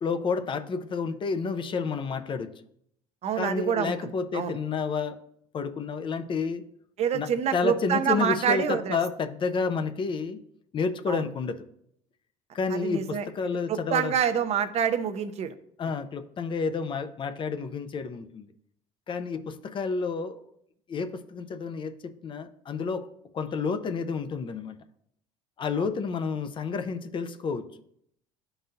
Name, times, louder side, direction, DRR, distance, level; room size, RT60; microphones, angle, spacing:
voice 1, 0.0-2.5 3.4-5.2 5.5-6.6 7.1-10.4 10.7-11.6 12.5-14.1 15.8-18.5 19.1-20.4 20.9-23.1 23.3-24.7 25.6-27.7, left 5 dB, 35° left, 9 dB, 0.6 m, -30 dB
voice 2, 3.2-4.6 7.0-9.0 11.1-11.2 12.7-15.5, right 8 dB, 45° right, 9 dB, 0.7 m, -27 dB
12.0 x 4.0 x 2.6 m, 0.72 s
supercardioid pair, 100°, 15 cm